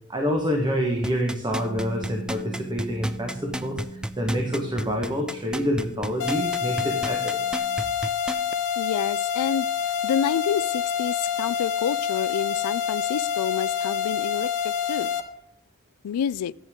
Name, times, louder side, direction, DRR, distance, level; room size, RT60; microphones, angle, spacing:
voice 1, 0.1-7.4, equal, 20° right, 1.2 m, -27 dB
sound 1, 1.0-8.5 9.0-9.1, right 1 dB, 5° right, 0.3 m, -32 dB
Bass guitar, 1.6-7.8, right 3 dB, 15° left, 1.5 m, -42 dB
sound 2, 6.2-15.2, left 8 dB, 60° left, 1.0 m, -27 dB
voice 2, 8.8-9.7 10.0-15.1 16.0-16.5, left 8 dB, 85° left, 0.3 m, -28 dB
11.5 x 7.9 x 3.6 m
head